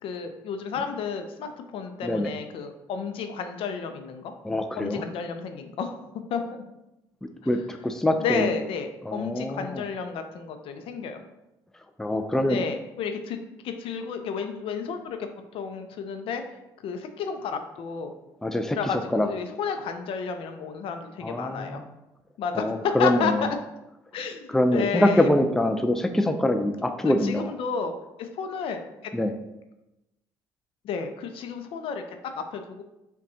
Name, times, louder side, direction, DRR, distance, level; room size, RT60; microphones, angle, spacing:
voice 1, 0.0-4.3 4.8-5.9 6.3-6.6 8.2-11.2 12.5-16.4 16.8-18.1 18.7-21.8 22.4-23.6 24.1-25.3 27.0-27.9 28.2-29.1 30.8-32.0 32.4-32.8, left 6 dB, 65° left, 7 dB, 0.5 m, -32 dB
voice 2, 4.4-5.1 7.2-8.4 9.1-9.8 12.0-12.6 18.4-19.3 21.2-21.8 22.5-23.5 24.5-27.5 29.1-29.3, left 1 dB, 5° left, 6 dB, 0.3 m, -24 dB
5.3 x 2.2 x 2.7 m, 0.93 s
hypercardioid pair, 60°, 10 cm